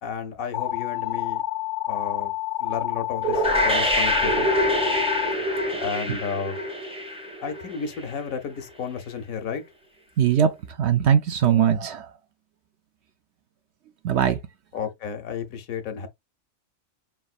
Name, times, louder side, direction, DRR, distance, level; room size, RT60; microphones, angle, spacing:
voice 1, 0.0-1.4 1.9-2.3 2.6-4.5 5.8-6.6 7.4-9.6 14.7-16.1, left 6 dB, 80° left, 1.2 m, -32 dB
sound 1, 0.5-5.3, left 15 dB, 65° left, 0.8 m, -29 dB
sound 2, 3.2-8.1, equal, 5° right, 0.6 m, -25 dB
voice 2, 10.2-12.1 14.0-14.4, right 9 dB, 65° right, 0.7 m, -21 dB
4.9 x 3.5 x 2.4 m
omnidirectional pair, 1.4 m